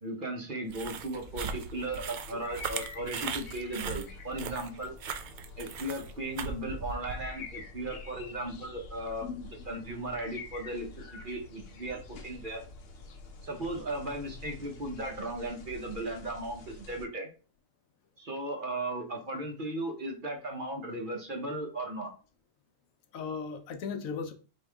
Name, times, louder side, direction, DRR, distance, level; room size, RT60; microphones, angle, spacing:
voice 1, 0.0-4.9 5.6-9.3 9.7-12.6 13.4-17.3 18.2-22.1, right 1 dB, 45° right, 1.0 m, -36 dB
sound 1, 0.7-7.3, right 6 dB, 75° right, 0.4 m, -38 dB
sound 2, 1.1-17.1, left 3 dB, 55° left, 0.8 m, -47 dB
voice 2, 23.1-24.3, left 5 dB, 80° left, 1.1 m, -37 dB
4.7 x 2.9 x 3.4 m
omnidirectional pair, 1.4 m